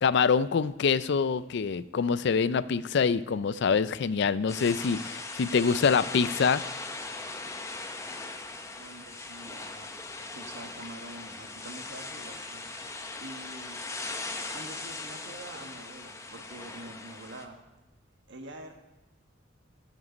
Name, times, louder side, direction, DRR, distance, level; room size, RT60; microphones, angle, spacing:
voice 1, 0.0-6.6, left 5 dB, 60° left, 16 dB, 0.4 m, -25 dB
sound 1, 4.5-17.5, left 3 dB, 15° left, 0.8 m, -39 dB
voice 2, 8.7-13.8 14.5-17.6 18.3-18.7, right 1 dB, 65° right, 4 dB, 1.5 m, -46 dB
13.0 x 7.4 x 5.2 m, 1.0 s
head